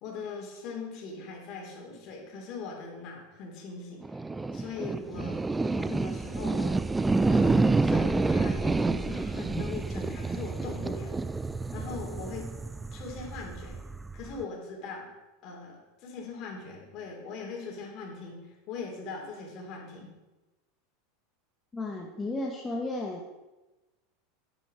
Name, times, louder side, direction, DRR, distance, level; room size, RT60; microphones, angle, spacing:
voice 1, 0.0-4.2 4.5-5.5 5.8-6.7 7.3-11.4 11.7-12.5 12.9-13.8 14.1-15.1 15.4-20.1, left 4 dB, 45° left, 0 dB, 3.1 m, -40 dB
sound 1, 4.0-14.4, right 3 dB, 10° right, 0.3 m, -28 dB
voice 2, 21.7-23.3, left 2 dB, 15° left, -1 dB, 1.1 m, -33 dB
9.2 x 8.4 x 4.9 m, 1.1 s
supercardioid pair, 135°, 0 cm